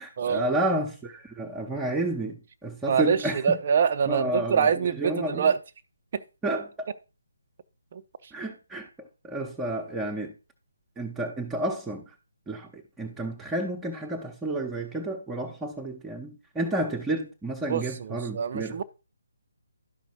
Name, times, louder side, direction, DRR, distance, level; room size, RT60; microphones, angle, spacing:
voice 1, 0.0-3.6 4.1-4.7 5.0-5.5 6.4-6.9 8.3-8.9 9.2-10.3 11.0-12.0 12.5-18.8, right 1 dB, 10° right, 0.9 m, -31 dB
voice 2, 2.9-3.2 3.4-5.6 17.7-18.8, right 7 dB, 35° right, 0.5 m, -24 dB
12.0 x 5.2 x 4.5 m
figure-of-eight pair, 145°, 0 cm